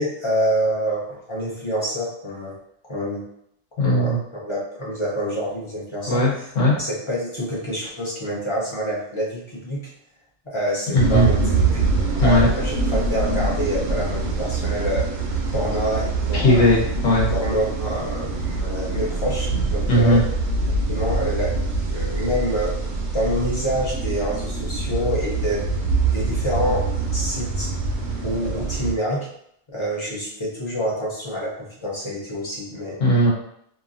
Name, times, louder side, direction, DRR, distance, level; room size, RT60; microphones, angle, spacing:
voice 1, 0.0-2.6 2.9-3.2 3.8-6.3 6.8-9.9 10.5-11.4 11.7-11.8 12.2-15.1 15.5-16.6 17.3-20.2 20.9-21.6 21.9-22.8 23.1-25.7 26.1-27.7 28.2-29.3 29.7-33.0, equal, 30° left, -5 dB, 0.7 m, -27 dB
voice 2, 3.8-4.2 6.1-6.8 10.9-11.3 12.2-12.5 16.3-17.3 19.5-19.6 19.9-20.2 33.0-33.3, equal, 75° left, -4 dB, 1.3 m, -18 dB
sound 1, 10.9-28.9, right 3 dB, 65° right, 0.8 m, -24 dB
2.8 x 2.5 x 2.5 m, 0.71 s
omnidirectional pair, 1.3 m